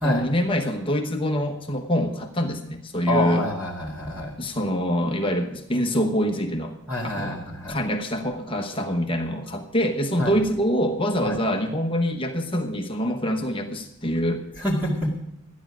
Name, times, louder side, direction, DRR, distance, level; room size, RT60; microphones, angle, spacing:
voice 1, 0.0-3.4 4.4-6.7 7.0-7.4 7.7-14.4, equal, 25° left, 4 dB, 1.0 m, -25 dB
voice 2, 3.1-4.3 6.9-7.8 10.2-10.4 11.2-11.4 14.6-15.1, left 1 dB, 10° right, -5 dB, 2.2 m, -26 dB
13.5 x 10.5 x 6.1 m, 0.83 s
head